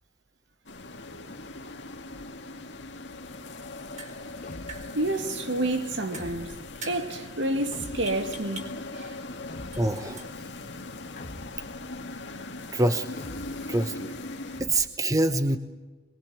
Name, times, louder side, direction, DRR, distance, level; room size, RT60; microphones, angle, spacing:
sound 1, 0.7-14.6, left 2 dB, 70° left, 2.2 m, -40 dB
sound 2, 3.9-12.3, right 3 dB, 40° right, 4.4 m, -48 dB
sound 3, 4.4-5.1 6.1-6.8 7.7-8.4 9.5-10.1 11.2-11.8 13.2-13.8, left 1 dB, 45° left, 1.6 m, -43 dB
voice 1, 4.9-6.5 6.9-9.2, right 1 dB, 80° right, 2.3 m, -29 dB
voice 2, 9.8-10.2 12.7-13.1 13.7-14.2 14.6-15.6, right 2 dB, 20° right, 1.0 m, -25 dB
23.5 x 22.0 x 8.6 m
head